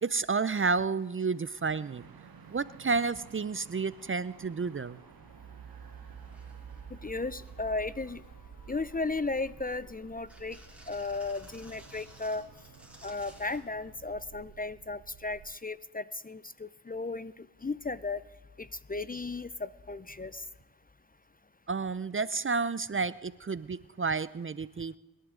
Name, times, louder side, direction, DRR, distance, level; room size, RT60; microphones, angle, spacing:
voice 1, 0.0-2.0 2.5-5.0 21.7-25.0, right 4 dB, 30° right, 17 dB, 0.6 m, -31 dB
sound 1, 0.8-14.0, left 2 dB, 50° left, 2.9 m, -61 dB
sound 2, 1.6-15.6, right 7 dB, 65° right, 0.8 m, -51 dB
sound 3, 6.2-6.8 7.3-7.6 8.1-8.5 9.0-9.8 10.3-13.7 14.7-14.8, right 1 dB, 5° right, 4.1 m, -56 dB
voice 2, 6.9-8.2 8.7-10.6 10.9-12.4 13.0-18.2 18.6-20.4, left 3 dB, 20° left, 17 dB, 0.6 m, -35 dB
23.5 x 11.0 x 3.8 m, 1.1 s
cardioid pair, 45°, 39 cm